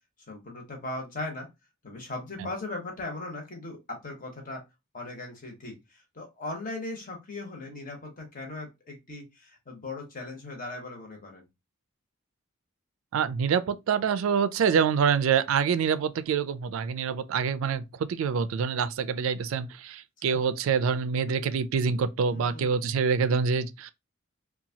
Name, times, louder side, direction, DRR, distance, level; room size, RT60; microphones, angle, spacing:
voice 1, 0.3-1.5 1.8-4.6 4.9-11.4 20.3-20.4 22.3-22.8, left 2 dB, 40° left, 0.9 m, -38 dB
voice 2, 13.1-17.8 18.1-23.9, right 6 dB, 75° right, 0.3 m, -26 dB
2.8 x 2.3 x 2.7 m
head